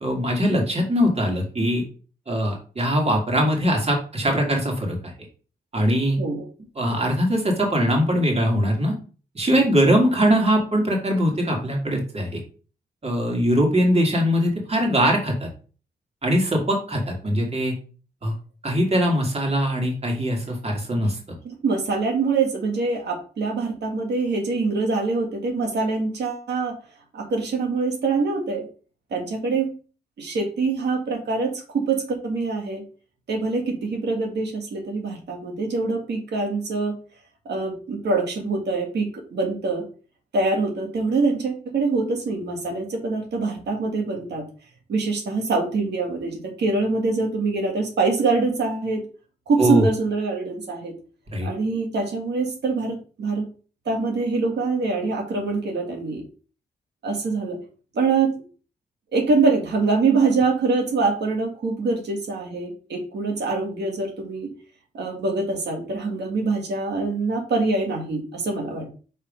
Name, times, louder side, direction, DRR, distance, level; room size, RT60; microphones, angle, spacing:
voice 1, 0.0-1.8 2.3-5.1 5.7-6.2 6.8-9.0 9.4-12.4 13.0-15.5 16.2-17.7 18.2-18.3 18.6-21.2 49.6-49.9 51.3-51.5, equal, 35° right, 0 dB, 2.2 m, -21 dB
voice 2, 21.4-26.7 27.1-28.7 29.1-29.7 30.2-32.8 33.3-36.9 37.5-39.8 40.3-44.4 44.9-49.0 49.5-50.9 51.4-53.4 53.9-56.2 57.0-57.6 57.9-58.3 59.1-64.5 64.9-68.9, right 3 dB, 85° right, 1 dB, 1.8 m, -24 dB
5.5 x 3.6 x 5.1 m, 0.38 s
cardioid pair, 80°, 17 cm